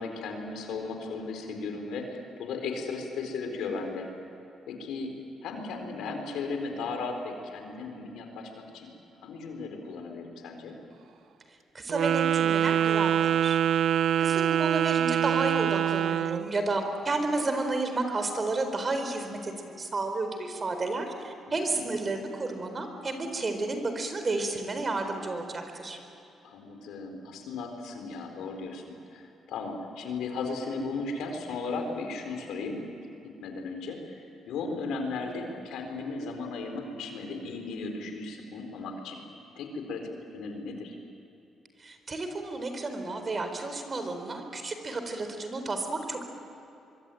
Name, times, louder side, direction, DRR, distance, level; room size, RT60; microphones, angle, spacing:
voice 1, 0.0-4.1 4.7-5.1 5.4-8.9 9.2-10.7 21.5-21.8 26.4-28.8 29.1-32.8 33.4-39.2 39.6-40.9, left 4 dB, 85° left, 4 dB, 4.3 m, -36 dB
voice 2, 11.7-13.6 14.2-26.0 41.8-46.2, right 3 dB, 35° right, 6 dB, 4.2 m, -31 dB
Wind instrument woodwind instrument, 11.9-16.5, right 10 dB, 65° right, 0.8 m, -25 dB
24.5 x 23.5 x 9.2 m, 2.8 s
cardioid pair, 90°, 0 cm